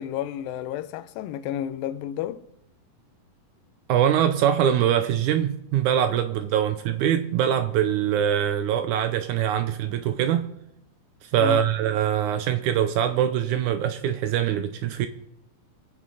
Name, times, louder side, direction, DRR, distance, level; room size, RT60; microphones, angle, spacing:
voice 1, 0.0-2.5 11.4-11.7, left 11 dB, 85° left, 2.4 m, -31 dB
voice 2, 3.9-10.5 11.2-15.1, right 10 dB, 75° right, 1.9 m, -23 dB
26.5 x 9.3 x 4.0 m
omnidirectional pair, 4.0 m